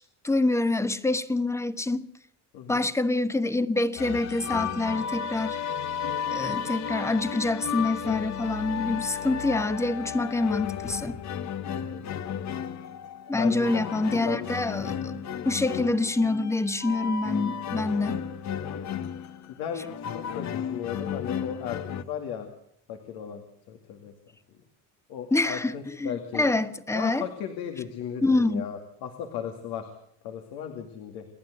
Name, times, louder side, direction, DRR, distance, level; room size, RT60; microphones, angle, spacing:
voice 1, 0.0-2.1 2.7-5.6 6.3-11.2 13.3-18.2 25.3-27.2 28.2-28.7, left 2 dB, 5° left, 1.1 m, -26 dB
voice 2, 2.5-2.9 6.4-6.7 11.7-12.1 13.4-13.8 14.2-15.1 19.6-22.5 22.9-23.4 23.7-24.1 25.1-26.5 26.9-29.9 30.2-31.3, left 8 dB, 80° left, 2.5 m, -36 dB
sound 1, 4.0-22.0, left 8 dB, 45° left, 1.2 m, -33 dB
28.5 x 11.5 x 8.1 m
cardioid pair, 115°, 37 cm